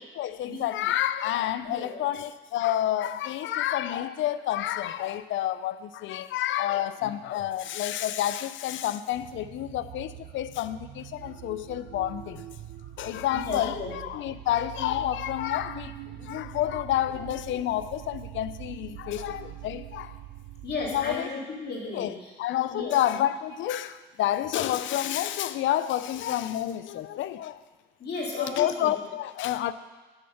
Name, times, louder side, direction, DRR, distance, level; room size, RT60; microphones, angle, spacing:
voice 1, 0.2-12.4 13.0-15.9 16.2-20.1 20.9-21.3 21.9-27.6 28.4-29.7, left 12 dB, 75° left, 14 dB, 0.4 m, -29 dB
voice 2, 1.6-2.0 13.3-13.9 19.1-19.2 20.6-22.3 22.7-23.0 28.0-28.9, left 3 dB, 55° left, -3 dB, 2.4 m, -34 dB
sound 1, 9.1-21.2, right 13 dB, 80° right, 0.5 m, -43 dB
7.8 x 6.6 x 5.7 m, 1.3 s
cardioid pair, 90°, 20 cm